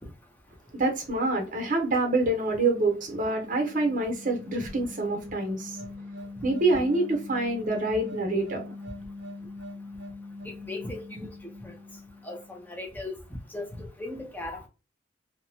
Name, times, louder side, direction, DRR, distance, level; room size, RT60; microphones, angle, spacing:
voice 1, 0.7-5.8 6.4-8.7, right 2 dB, 40° right, 0.8 m, -26 dB
sound 1, 2.7-12.8, left 2 dB, 70° right, 0.7 m, -43 dB
voice 2, 10.6-11.3 11.6-11.7 12.2-13.1 13.5-14.7, left 2 dB, 10° left, 0.5 m, -37 dB
2.9 x 2.1 x 2.7 m
head